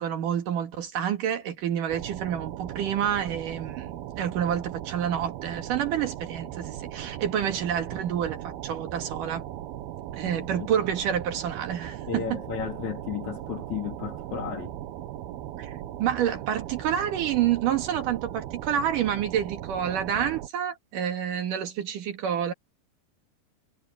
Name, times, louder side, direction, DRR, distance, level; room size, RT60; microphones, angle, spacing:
voice 1, 0.0-9.4 10.1-12.4 15.6-15.7 16.0-22.5, right 9 dB, 65° right, 3.1 m, -28 dB
sound 1, 1.9-20.5, right 12 dB, 85° right, 3.1 m, -38 dB
voice 2, 10.3-10.7 12.1-14.8, left 7 dB, 55° left, 3.7 m, -34 dB
omnidirectional pair, 4.3 m